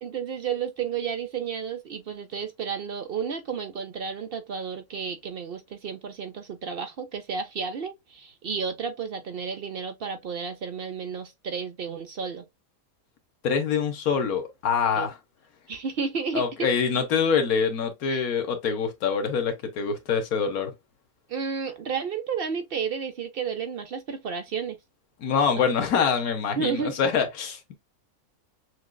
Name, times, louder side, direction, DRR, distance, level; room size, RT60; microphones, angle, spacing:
voice 1, 0.0-12.4 15.0-15.1 15.7-16.4 18.1-18.3 21.3-24.8 26.6-27.0, right 6 dB, 55° right, 0.7 m, -32 dB
voice 2, 13.4-15.2 16.3-20.7 25.2-27.7, left 6 dB, 75° left, 1.5 m, -25 dB
6.3 x 2.4 x 2.3 m
omnidirectional pair, 1.5 m